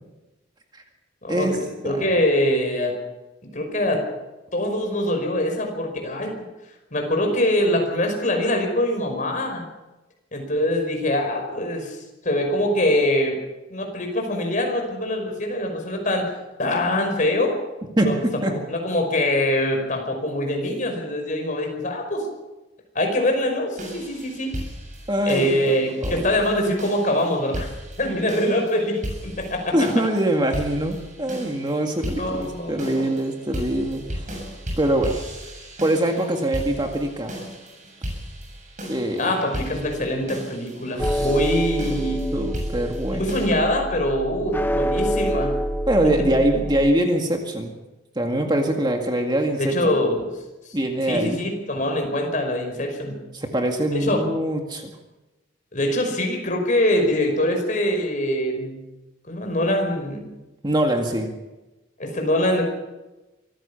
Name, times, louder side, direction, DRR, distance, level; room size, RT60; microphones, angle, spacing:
voice 1, 1.2-3.0 3.5-4.0 4.5-6.5 6.9-9.6 10.3-12.0 12.2-13.3 13.7-16.2 16.6-17.6 18.0-18.2 18.7-22.2 22.9-24.5 25.3-27.7 28.0-29.7 32.2-33.1 39.2-42.3 43.1-45.6 49.6-50.3 50.7-50.8 51.1-53.2 53.9-54.2 55.7-58.8 59.3-60.3 62.0-62.6, left 1 dB, 40° left, 3 dB, 5.4 m, -23 dB
voice 2, 18.0-18.6 25.1-26.2 29.7-34.3 34.8-35.2 35.8-37.3 38.9-39.3 40.9-41.3 42.3-43.3 45.9-47.7 48.2-50.0 50.7-51.4 53.3-54.9 60.6-61.3, right 1 dB, 20° right, 3 dB, 2.0 m, -23 dB
sound 1, 23.8-43.5, equal, 40° right, 7.8 m, -36 dB
sound 2, 41.0-46.9, equal, 10° left, 0.8 m, -27 dB
25.0 x 15.5 x 7.0 m, 1.1 s
head